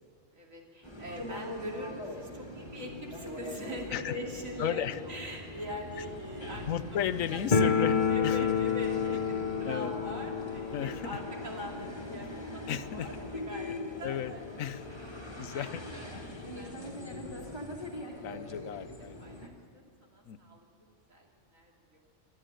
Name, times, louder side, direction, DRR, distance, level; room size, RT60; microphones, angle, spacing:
voice 1, 0.3-6.7 7.1-7.4 8.1-16.1 16.5-16.7 17.0-17.1 17.5-17.6 18.1-18.5 19.2-20.6 21.1-21.3 21.5-22.0, left 1 dB, 85° right, -1 dB, 3.2 m, -43 dB
sound 1, 0.8-19.5, left 1 dB, 20° left, 2.0 m, -42 dB
voice 2, 4.6-5.0 6.7-8.0 8.2-8.4 9.7-9.9 10.7-11.2 12.7-13.1 14.0-14.3 14.6-14.8 15.4-15.8 17.1-17.4 18.2-19.2 20.3-20.4, left 10 dB, 85° left, 14 dB, 1.1 m, -34 dB
sound 2, 7.5-14.2 14.5-14.6 14.8-14.9 15.7-15.8 16.1-17.3, left 6 dB, 40° left, 0.9 m, -31 dB
23.0 x 13.0 x 9.1 m, 2.3 s
omnidirectional pair, 1.4 m